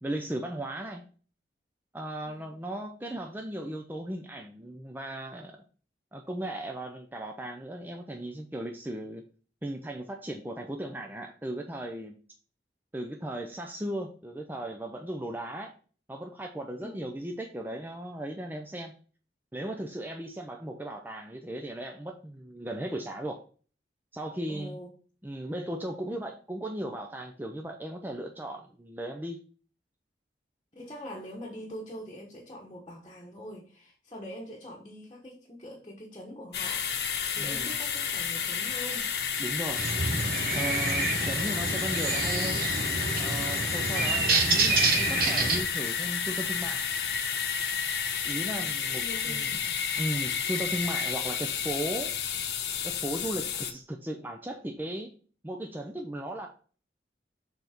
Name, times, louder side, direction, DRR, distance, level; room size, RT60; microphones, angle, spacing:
voice 1, 0.0-1.0 1.9-5.6 6.1-9.2 9.6-12.2 12.9-15.7 16.1-18.9 19.5-23.4 24.1-24.8 25.2-29.4 37.3-37.7 39.4-39.8 40.5-42.6 43.2-46.8 48.2-49.6 50.0-52.1 52.8-55.1 55.4-56.5, right 1 dB, 10° right, 0.5 m, -36 dB
voice 2, 24.5-24.9 30.7-36.8 37.4-39.1 48.9-49.6, equal, 25° left, 1.1 m, -43 dB
sound 1, 36.5-53.7, left 7 dB, 65° left, 0.9 m, -31 dB
sound 2, 39.8-45.6, right 3 dB, 55° right, 1.1 m, -28 dB
6.9 x 4.0 x 4.3 m
head